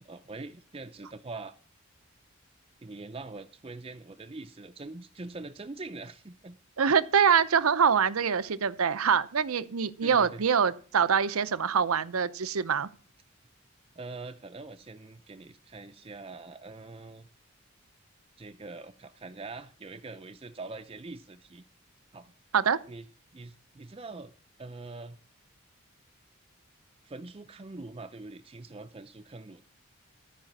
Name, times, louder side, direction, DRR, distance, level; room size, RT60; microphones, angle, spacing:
voice 1, 0.0-1.5 2.8-6.6 10.0-10.4 14.0-17.3 18.4-21.6 22.1-22.3 22.9-23.1 23.3-24.3 24.6-25.2 27.0-29.6, right 3 dB, 25° right, 0.5 m, -43 dB
voice 2, 6.8-12.9 22.5-22.8, right 6 dB, 85° right, 0.7 m, -24 dB
13.5 x 5.0 x 7.3 m
head